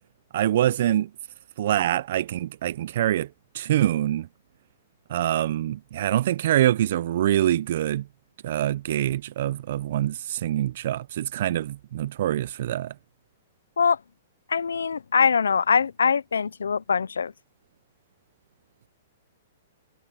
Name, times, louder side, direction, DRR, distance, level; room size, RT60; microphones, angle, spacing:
voice 1, 0.3-1.1 1.6-3.3 3.5-4.3 5.1-8.0 8.4-12.9, right 12 dB, 60° right, 0.5 m, -25 dB
voice 2, 14.5-17.3, left 6 dB, 85° left, 0.4 m, -23 dB
hypercardioid pair, 125°, 0 cm